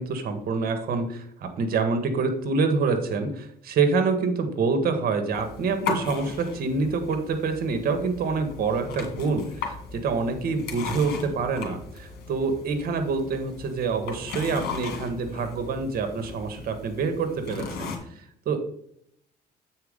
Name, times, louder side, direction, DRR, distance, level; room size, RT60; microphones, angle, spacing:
voice 1, 0.0-18.6, right 4 dB, 60° right, 8 dB, 1.5 m, -26 dB
sound 1, 5.3-18.0, left 5 dB, 80° left, 2.2 m, -37 dB
8.0 x 4.6 x 5.2 m, 0.69 s
cardioid pair, 110°, 17 cm